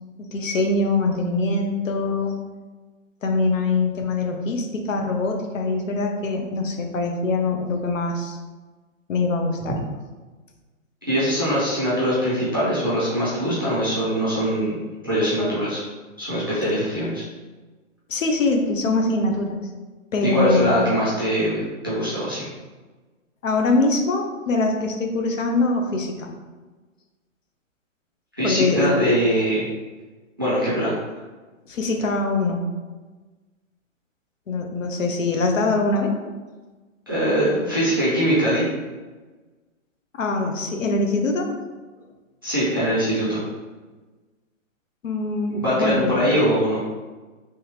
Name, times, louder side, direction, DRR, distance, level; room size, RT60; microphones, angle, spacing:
voice 1, 0.2-2.3 3.2-8.4 9.1-9.8 18.1-19.6 20.1-20.8 23.4-26.3 28.4-29.0 31.7-32.6 34.5-36.1 40.1-41.5 45.0-46.3, left 3 dB, 70° left, 3 dB, 0.8 m, -23 dB
voice 2, 11.1-15.8 16.2-17.3 20.2-22.5 28.4-29.7 30.4-31.0 37.1-38.6 42.4-43.4 45.5-46.8, equal, 15° right, -10 dB, 0.5 m, -22 dB
3.4 x 3.3 x 3.1 m, 1.3 s
hypercardioid pair, 180°, 41 cm